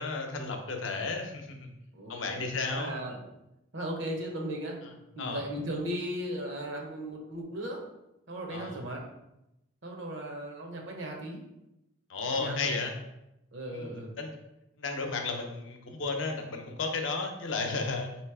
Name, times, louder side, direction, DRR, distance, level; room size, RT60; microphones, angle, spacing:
voice 1, 0.0-1.7 2.1-2.9 5.2-5.4 8.5-8.8 12.1-12.9 13.7-14.3 14.8-18.1, left 4 dB, 75° left, 3 dB, 0.7 m, -33 dB
voice 2, 1.9-3.2 3.7-4.8 5.2-7.8 8.3-9.0 9.8-11.4 12.2-12.7 13.5-14.1, right 1 dB, 65° right, 1 dB, 0.9 m, -37 dB
3.2 x 3.0 x 4.7 m, 0.89 s
head